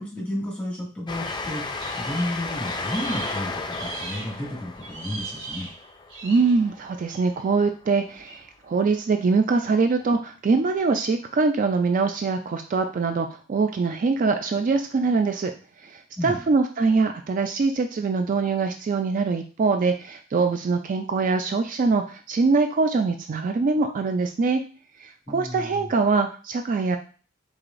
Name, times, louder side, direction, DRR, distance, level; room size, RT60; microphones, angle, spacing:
voice 1, 0.0-5.7 16.2-16.5 25.3-25.9, left 1 dB, 5° left, -4 dB, 1.9 m, -32 dB
Train, 1.1-7.2, left 3 dB, 25° left, 0.4 m, -34 dB
sound 1, 1.2-4.4 4.8-6.6 7.1-7.4 8.2-8.4, right 3 dB, 85° right, 1.3 m, -39 dB
voice 2, 6.2-15.5 15.8-24.6 25.0-27.0, right 4 dB, 40° right, 6 dB, 0.3 m, -23 dB
4.7 x 3.8 x 2.5 m, 0.39 s
head